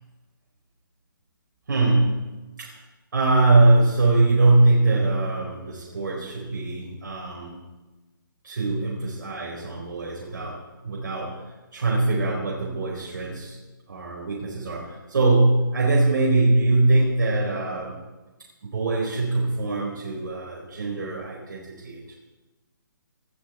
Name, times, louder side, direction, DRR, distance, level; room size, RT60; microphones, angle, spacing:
voice 1, 1.7-2.3 2.6-2.8 3.1-7.6 8.4-13.6 13.9-18.0 18.6-22.2, right 2 dB, 70° right, -3 dB, 4.7 m, -22 dB
20.0 x 13.0 x 4.6 m, 1.1 s
hypercardioid pair, 165°, 11 cm